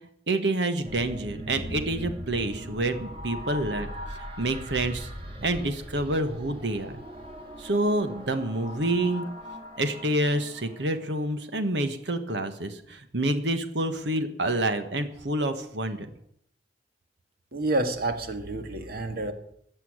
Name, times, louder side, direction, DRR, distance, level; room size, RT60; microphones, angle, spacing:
voice 1, 0.3-5.1 5.4-7.0 7.6-9.3 9.8-16.1, right 1 dB, 75° right, 9 dB, 1.6 m, -28 dB
sound 1, 0.8-11.2, equal, 30° right, 3.0 m, -40 dB
voice 2, 17.5-19.3, right 2 dB, 60° right, 7 dB, 1.8 m, -29 dB
15.0 x 7.1 x 9.6 m, 0.72 s
head